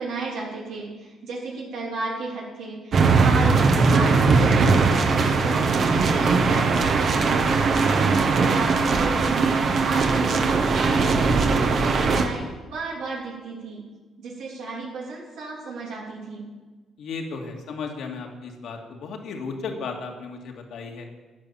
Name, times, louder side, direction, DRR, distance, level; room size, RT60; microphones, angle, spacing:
voice 1, 0.0-4.8 5.1-7.9 8.3-13.8 14.2-16.4, right 3 dB, 90° right, -4 dB, 3.2 m, -33 dB
sound 1, 2.9-12.2, right 4 dB, 55° right, 1.4 m, -20 dB
voice 2, 8.4-8.8 17.0-21.1, left 4 dB, 75° left, 2 dB, 2.2 m, -35 dB
11.0 x 9.9 x 7.2 m, 1.3 s
cardioid pair, 90°, 0 cm